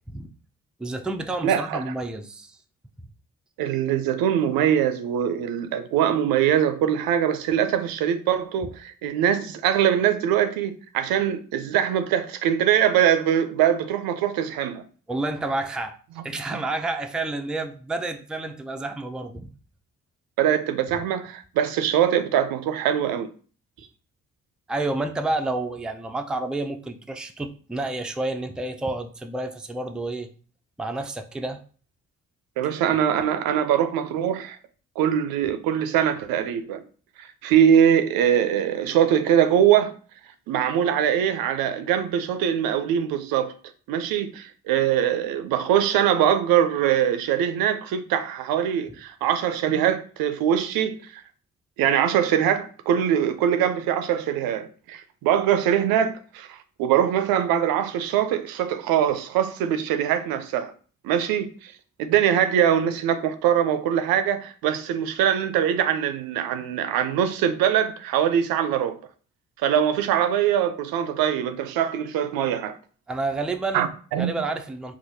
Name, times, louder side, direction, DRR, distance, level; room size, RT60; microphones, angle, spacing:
voice 1, 0.8-2.6 15.1-16.0 16.2-19.5 24.7-30.3 30.8-31.6 73.1-73.9 74.1-75.0, right 2 dB, ahead, 0.4 m, -29 dB
voice 2, 1.4-1.8 3.6-14.8 20.4-23.3 32.6-34.6 35.0-36.8 37.2-39.9 40.5-43.5 43.9-51.2 51.8-60.7 61.0-61.7 62.0-69.0 69.6-72.8 73.7-74.3, right 9 dB, 75° right, 0.5 m, -22 dB
4.5 x 2.1 x 2.7 m
hypercardioid pair, 40°, 36 cm